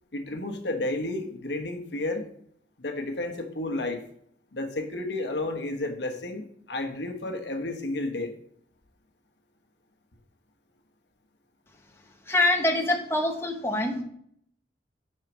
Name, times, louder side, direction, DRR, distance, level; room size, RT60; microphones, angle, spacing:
voice 1, 0.1-2.3 2.8-4.0 4.5-8.3, left 2 dB, 65° left, 4 dB, 1.2 m, -31 dB
voice 2, 12.3-14.0, left 2 dB, 15° left, 1 dB, 1.0 m, -25 dB
6.3 x 5.7 x 6.1 m, 0.67 s
head